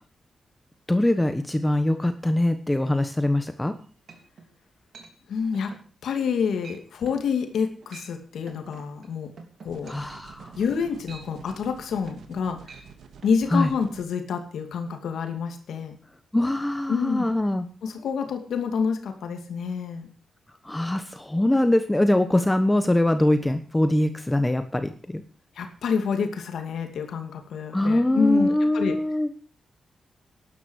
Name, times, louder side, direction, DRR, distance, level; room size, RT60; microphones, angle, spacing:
voice 1, 0.9-3.7 9.9-10.6 13.5-13.7 16.3-17.7 20.6-25.2 27.7-29.3, left 1 dB, 10° left, 9 dB, 1.1 m, -23 dB
sound 1, 3.7-3.8 4.1-4.5 4.9-5.1 5.5-5.9 6.2-6.4 6.6-6.8 7.1-7.3 7.7-8.1 8.5-12.4 12.6-12.9 13.2-13.4, right 4 dB, 55° right, 3.4 m, -47 dB
voice 2, 5.3-5.7 6.0-9.3 9.6-9.9 10.6-12.8 13.2-16.0 16.9-17.3 17.8-20.1 25.6-29.0, left 6 dB, 85° left, 5 dB, 2.5 m, -28 dB
sound 2, 9.7-14.0, right 6 dB, 85° right, 2.3 m, -48 dB
12.0 x 11.5 x 6.4 m, 0.41 s
cardioid pair, 100°, 0 cm